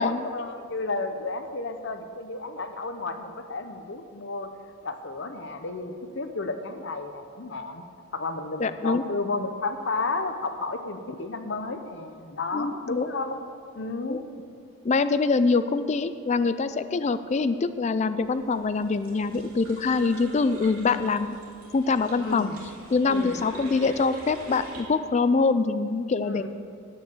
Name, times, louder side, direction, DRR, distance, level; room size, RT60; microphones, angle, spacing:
voice 1, 0.0-4.5 4.8-7.8 8.1-13.5 13.7-14.2 22.2-22.6 23.1-23.4 26.2-26.5, left 3 dB, 55° left, 7 dB, 0.8 m, -32 dB
voice 2, 8.6-9.0 12.5-13.1 14.1-14.2 14.8-21.4 21.7-22.5 22.9-26.5, left 4 dB, 30° left, 12 dB, 0.3 m, -24 dB
sound 1, 18.2-24.8, right 1 dB, 90° right, 2.6 m, -45 dB
9.8 x 8.9 x 7.0 m, 2.3 s
head